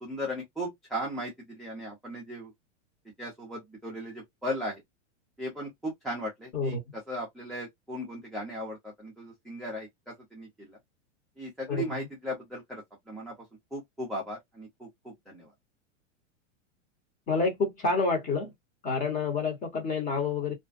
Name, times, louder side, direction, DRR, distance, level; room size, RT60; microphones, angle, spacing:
voice 1, 0.0-2.5 3.2-4.8 5.4-6.8 7.1-10.8 11.4-13.3 13.7-15.5, equal, ahead, 0.5 m, -37 dB
voice 2, 6.5-7.0 11.7-12.0 17.3-18.5 18.8-20.5, left 4 dB, 20° left, 1.0 m, -28 dB
2.5 x 2.1 x 2.4 m
supercardioid pair, 140°, 38 cm